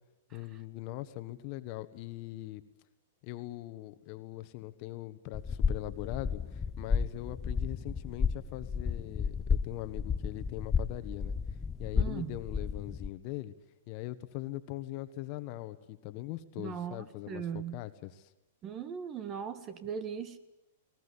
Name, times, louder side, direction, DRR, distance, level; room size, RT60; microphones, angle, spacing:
voice 1, 0.3-2.6 3.2-11.3 11.8-13.5 13.9-18.3, left 16 dB, 45° left, 11 dB, 1.4 m, -41 dB
sound 1, 5.3-13.1, left 6 dB, 15° left, 0.7 m, -32 dB
voice 2, 11.9-12.4 16.6-17.8 18.6-20.4, right 7 dB, 30° right, 12 dB, 1.7 m, -39 dB
20.5 x 19.0 x 9.9 m, 0.94 s
hypercardioid pair, 130°, 0 cm